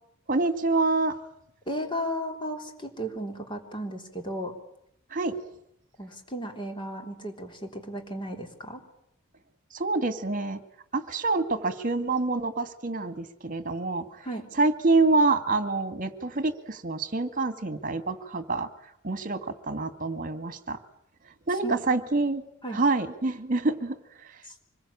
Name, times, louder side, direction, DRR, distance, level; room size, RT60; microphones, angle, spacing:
voice 1, 0.3-1.2 5.1-5.4 9.7-10.6 10.9-14.2 14.5-18.7 19.0-20.8 21.5-22.4 22.7-24.0, right 3 dB, 40° right, 10 dB, 2.0 m, -26 dB
voice 2, 1.7-4.5 6.0-8.8 14.2-14.5 21.6-21.8 22.6-22.8 24.4-24.5, equal, 25° left, 3 dB, 3.7 m, -34 dB
25.5 x 22.0 x 8.7 m, 0.78 s
head